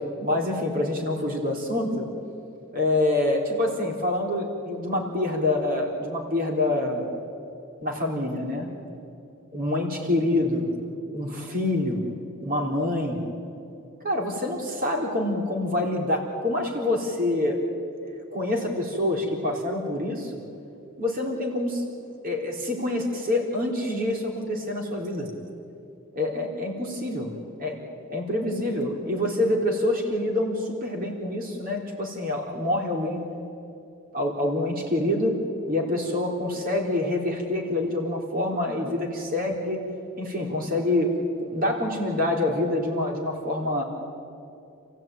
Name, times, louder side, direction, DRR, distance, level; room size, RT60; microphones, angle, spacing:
voice 1, 0.2-2.1 2.7-7.1 7.8-8.7 9.5-10.7 11.1-12.0 12.4-13.2 14.0-17.6 17.9-20.3 21.0-21.8 22.2-25.3 26.2-27.3 27.6-27.8 28.1-33.2 34.1-35.4 35.7-39.8 40.2-41.1 41.5-43.8, left 1 dB, 45° right, 1 dB, 3.9 m, -26 dB
28.5 x 15.5 x 9.2 m, 2.6 s
head